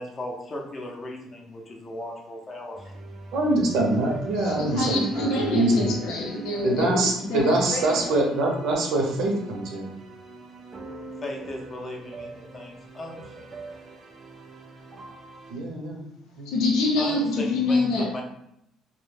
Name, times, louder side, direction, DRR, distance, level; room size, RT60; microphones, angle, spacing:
voice 1, 0.0-3.0 11.2-13.5 17.0-18.2, left 1 dB, 25° left, 0 dB, 0.5 m, -37 dB
sound 1, 2.7-15.5, right 3 dB, 30° right, 0.4 m, -42 dB
voice 2, 3.3-5.9 6.6-9.9 15.5-16.0 16.4-16.5, right 2 dB, 70° right, 0 dB, 0.6 m, -24 dB
voice 3, 4.3-8.1 16.5-18.2, left 2 dB, 90° left, -3 dB, 0.6 m, -26 dB
2.1 x 2.0 x 3.2 m, 0.78 s
cardioid pair, 140°, 0 cm